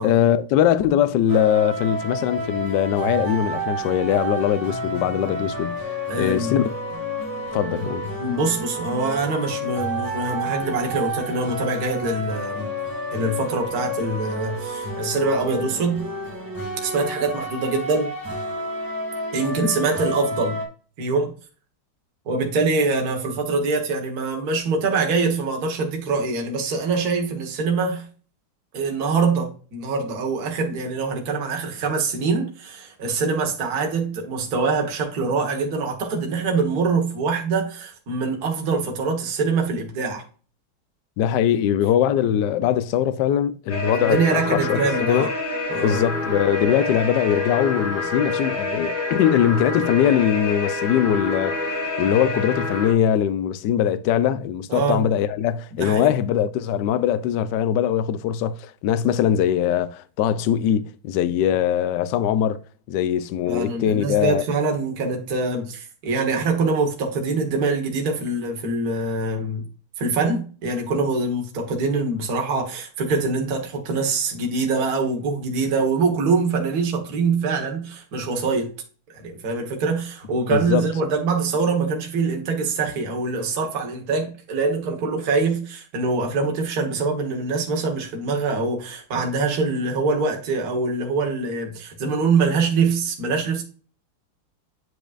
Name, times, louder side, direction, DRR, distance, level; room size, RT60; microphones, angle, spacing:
voice 1, 0.0-6.7 7.5-8.1 41.2-45.3 45.8-62.6 62.9-64.4 80.5-80.8, left 10 dB, 75° left, 1.0 m, -21 dB
sound 1, 1.3-20.7, right 1 dB, 10° right, 1.8 m, -30 dB
voice 2, 6.1-6.6 8.2-12.7 13.1-16.0 16.8-18.1 19.3-20.6 21.0-21.3 22.2-28.1 28.7-40.2 43.9-45.3 45.7-46.0 54.7-55.0 55.8-56.1 63.5-69.7 70.0-78.7 79.1-93.6, right 4 dB, 50° right, 1.8 m, -24 dB
sound 2, 43.7-52.9, left 3 dB, 90° left, 3.5 m, -27 dB
9.8 x 5.1 x 2.5 m
omnidirectional pair, 2.4 m